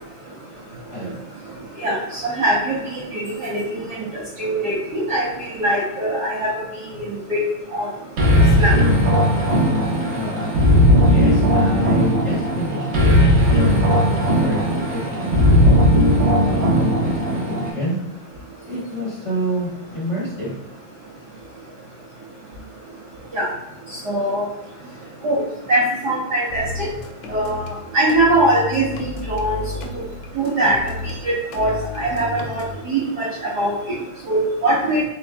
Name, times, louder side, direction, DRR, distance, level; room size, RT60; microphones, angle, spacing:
voice 1, 1.8-3.6 4.4-5.3 5.6-6.5 6.9-7.0 7.3-7.4 7.7-7.9 8.6-8.8 23.3-23.5 24.1-24.4 25.2-25.4 25.7-26.9 27.3-27.7 27.9-29.6 30.4-30.8 31.2-33.3 33.6-33.7 34.3-35.0, right 1 dB, 85° right, -6 dB, 0.9 m, -21 dB
sound 1, 8.2-17.7, equal, 55° right, 1.8 m, -17 dB
voice 2, 9.5-15.8 16.3-18.0 18.6-20.5, equal, 40° left, -8 dB, 1.0 m, -28 dB
sound 2, 26.5-27.7 28.1-31.2 31.5-32.7, left 4 dB, 80° left, 1.6 m, -32 dB
4.8 x 4.1 x 2.3 m, 0.92 s
omnidirectional pair, 3.4 m